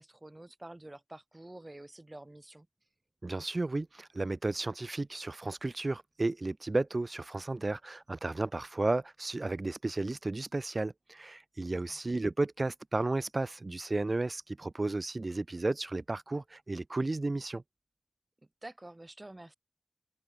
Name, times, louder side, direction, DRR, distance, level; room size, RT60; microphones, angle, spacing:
voice 1, 0.0-2.7 11.7-12.0 18.6-19.5, right 1 dB, 30° right, 2.2 m, -48 dB
voice 2, 3.2-17.6, right 2 dB, 45° right, 0.3 m, -33 dB
open air
wide cardioid pair, 50°, 0 cm